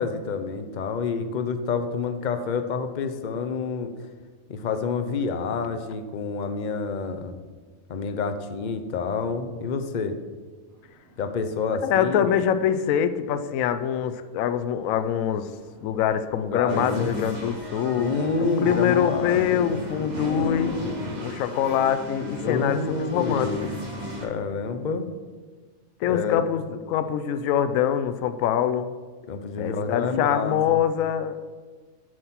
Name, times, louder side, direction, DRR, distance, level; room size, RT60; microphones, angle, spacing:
voice 1, 0.0-3.9 4.5-7.4 7.9-10.2 11.2-12.4 16.3-17.1 18.0-19.8 20.3-20.8 22.4-23.5 24.2-25.1 26.0-26.4 29.3-30.8, left 5 dB, 45° left, 8 dB, 0.6 m, -28 dB
sound 1, 10.7-24.9, equal, 90° right, 3.1 m, -46 dB
voice 2, 11.8-15.5 15.8-18.1 18.4-20.8 21.2-22.8 23.1-23.5 26.0-28.9 29.6-31.5, left 9 dB, 75° left, 11 dB, 0.9 m, -24 dB
sound 2, 16.7-24.3, left 1 dB, 35° right, 1.2 m, -34 dB
7.8 x 6.2 x 5.8 m, 1.5 s
omnidirectional pair, 1.5 m